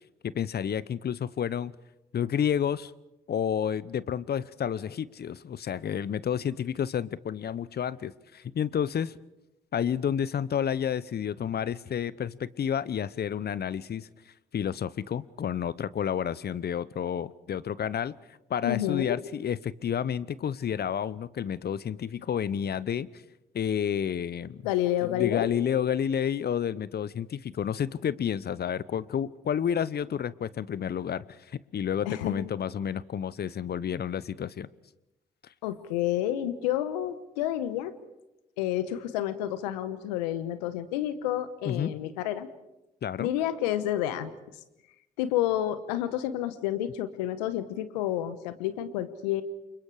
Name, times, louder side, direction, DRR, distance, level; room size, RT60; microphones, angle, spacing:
voice 1, 0.2-1.7 2.1-2.9 3.3-9.1 9.7-14.1 14.5-18.1 18.5-23.1 23.5-24.7 25.0-31.2 31.7-34.7 41.7-41.9 43.0-43.3, left 8 dB, 50° left, 20 dB, 0.9 m, -30 dB
voice 2, 18.6-19.2 24.6-25.5 32.0-32.5 35.6-37.9 38.6-42.5 43.2-44.3 45.2-49.4, left 12 dB, 85° left, 14 dB, 1.1 m, -29 dB
29.0 x 25.5 x 4.9 m, 0.95 s
hypercardioid pair, 40°, 21 cm